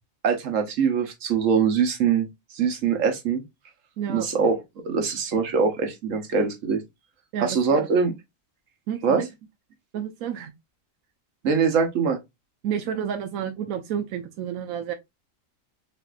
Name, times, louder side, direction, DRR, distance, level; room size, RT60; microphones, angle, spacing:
voice 1, 0.2-2.3 2.5-3.4 4.1-4.6 4.8-6.8 7.4-8.1 9.0-9.2 11.4-12.2, right 6 dB, 70° right, 1.4 m, -23 dB
voice 2, 4.0-4.3 7.3-7.9 8.9-9.3 9.9-10.5 12.6-14.9, right 8 dB, 90° right, 1.1 m, -30 dB
5.5 x 2.7 x 2.5 m
omnidirectional pair, 1.4 m